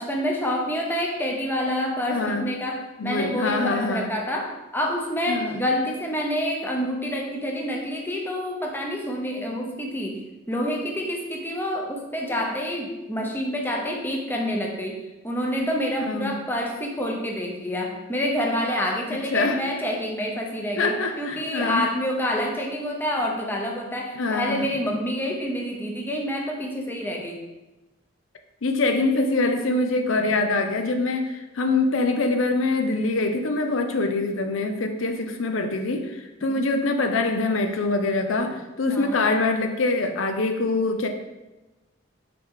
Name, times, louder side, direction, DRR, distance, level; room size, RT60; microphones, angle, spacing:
voice 1, 0.0-27.4 36.5-36.7 38.9-39.2, equal, 10° left, 0 dB, 0.8 m, -28 dB
voice 2, 2.1-2.5 3.0-4.1 5.3-5.6 16.1-16.3 19.3-19.6 20.8-21.9 24.2-24.7 28.6-41.1, left 3 dB, 75° left, 6 dB, 0.6 m, -24 dB
5.8 x 4.9 x 3.7 m, 1.1 s
head